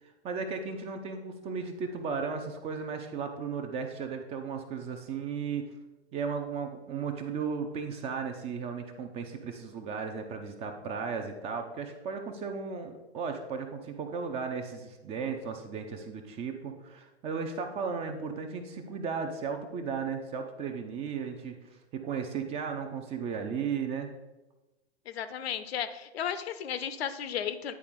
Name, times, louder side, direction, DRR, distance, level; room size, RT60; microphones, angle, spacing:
voice 1, 0.0-5.7 6.1-21.6 21.9-24.1, right 5 dB, 20° right, 6 dB, 0.5 m, -35 dB
voice 2, 25.1-27.7, left 9 dB, 65° left, 11 dB, 0.7 m, -34 dB
9.6 x 4.1 x 3.6 m, 1.1 s
hypercardioid pair, 115°, 33 cm